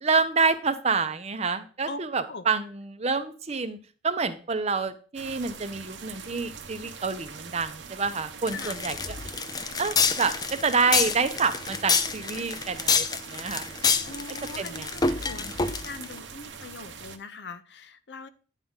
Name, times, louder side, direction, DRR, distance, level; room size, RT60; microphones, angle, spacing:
voice 1, 0.0-3.8 4.0-9.0 9.8-10.3 10.6-13.7 14.6-15.5, right 4 dB, 35° right, 10 dB, 0.7 m, -28 dB
sound 1, 5.1-17.2, right 6 dB, 80° right, 0.9 m, -43 dB
sound 2, 8.5-16.1, left 5 dB, 20° left, 0.5 m, -27 dB
voice 2, 14.0-18.3, left 3 dB, 65° left, 12 dB, 0.6 m, -41 dB
9.1 x 3.7 x 5.5 m, 0.38 s
head